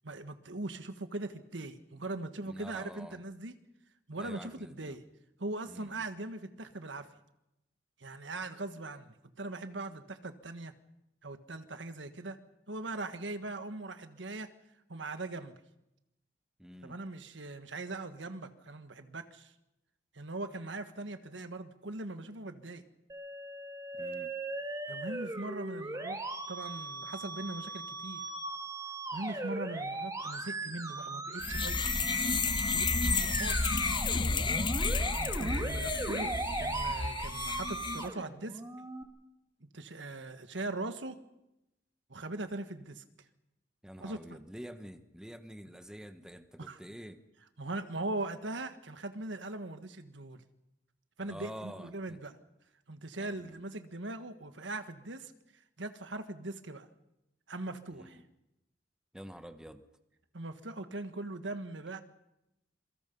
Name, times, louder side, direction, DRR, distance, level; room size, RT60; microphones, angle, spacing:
voice 1, 0.0-3.5 4.1-5.0 5.4-7.1 8.0-10.7 11.2-12.4 12.7-14.5 14.9-15.5 16.8-19.5 20.1-22.8 24.9-26.2 26.5-28.2 29.1-31.8 32.7-33.9 35.2-38.6 39.6-41.2 42.1-43.0 44.0-44.4 46.6-46.8 47.6-50.4 51.2-52.3 52.9-55.3 55.8-56.9 57.5-58.2 60.3-62.0, right 2 dB, 85° right, 9 dB, 1.6 m, -40 dB
voice 2, 2.4-3.2 4.1-5.0 5.7-6.1 16.6-16.9 24.0-24.3 43.8-47.2 51.2-52.2 53.2-53.5 57.9-58.2 59.1-59.8, equal, 5° right, 8 dB, 1.2 m, -47 dB
Musical instrument, 23.1-39.0, right 2 dB, 20° right, 2.3 m, -38 dB
sound 1, 31.4-38.1, left 4 dB, 25° left, 0.8 m, -31 dB
26.5 x 23.5 x 5.5 m, 0.90 s
head